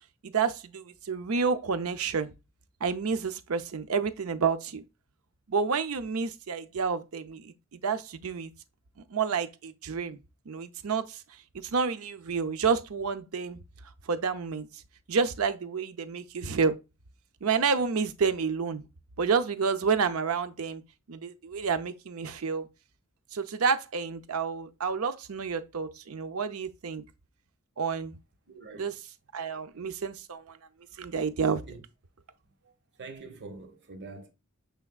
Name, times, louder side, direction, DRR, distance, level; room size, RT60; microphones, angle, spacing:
voice 1, 0.2-2.3 2.8-4.8 5.5-8.5 9.1-10.2 10.5-11.2 11.5-13.6 14.1-14.7 15.1-16.8 17.4-18.8 19.2-20.8 21.1-22.7 23.3-27.0 27.8-28.2 28.8-29.0 29.3-30.6 31.0-31.6, right 5 dB, 90° right, 0.6 m, -29 dB
voice 2, 28.5-28.9 31.7-31.8 33.0-34.3, right 3 dB, 55° right, 1.0 m, -44 dB
6.4 x 3.4 x 2.3 m
head